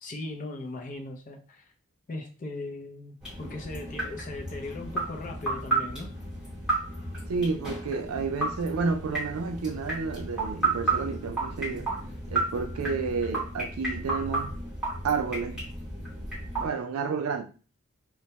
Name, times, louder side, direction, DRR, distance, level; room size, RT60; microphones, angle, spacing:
voice 1, 0.0-1.7 2.1-6.1, left 2 dB, 35° left, 0.4 m, -38 dB
sound 1, 3.2-16.7, right 3 dB, 5° right, 1.0 m, -32 dB
voice 2, 7.3-11.9 12.3-14.5 15.0-15.7 16.6-17.4, right 5 dB, 75° right, 0.4 m, -30 dB
2.1 x 2.1 x 2.8 m
head